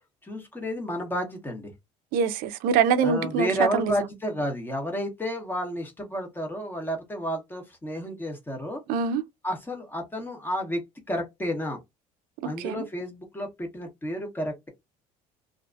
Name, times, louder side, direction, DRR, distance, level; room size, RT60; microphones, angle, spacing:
voice 1, 0.2-1.7 3.0-8.8 9.4-10.8 11.1-11.8 12.4-14.7, equal, 15° left, 0.9 m, -31 dB
voice 2, 2.1-3.9 8.9-9.2 12.4-12.8, right 6 dB, 75° right, 0.5 m, -24 dB
2.6 x 2.5 x 2.3 m
cardioid pair, 120°, 15 cm